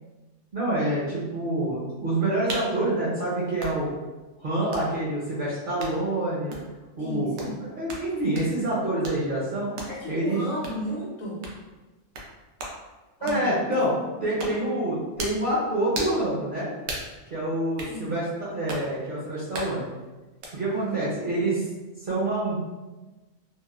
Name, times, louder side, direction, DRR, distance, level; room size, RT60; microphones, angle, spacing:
voice 1, 0.5-3.9 4.4-6.5 7.0-9.7 10.1-10.4 13.2-13.9 14.2-16.7 17.3-19.9 20.5-21.6 22.0-22.6, right 1 dB, 55° right, -8 dB, 0.6 m, -27 dB
sound 1, 2.5-2.7 3.6-3.8 4.7-4.9 5.8-6.0 6.5-6.7 7.4-7.5 7.9-8.1 8.4-8.5 9.0-9.2 9.8-10.0 10.6-10.8 11.4-11.6 12.1-12.3 12.6-12.8 13.3-13.5 14.4-14.6 15.2-15.4 15.9-16.2 16.9-17.1 17.8-17.9 18.7-18.9 19.5-19.8 20.4-20.5, right 1 dB, 85° right, 1.0 m, -35 dB
voice 2, 7.0-7.6 9.9-11.5 13.2-13.6 17.9-18.1 20.7-21.1, right 1 dB, 65° left, -3 dB, 0.9 m, -34 dB
3.0 x 2.0 x 2.3 m, 1.2 s
omnidirectional pair, 1.4 m